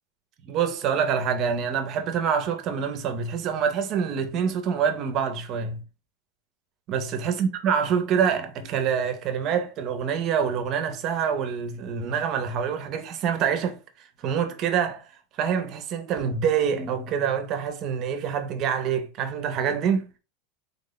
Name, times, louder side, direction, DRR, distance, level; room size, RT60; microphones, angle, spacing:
voice 1, 0.5-5.8 6.9-13.8 14.2-15.0 15.4-20.1, right 7 dB, 30° right, 0.5 m, -26 dB
3.5 x 2.1 x 3.8 m
supercardioid pair, 175°, 0 cm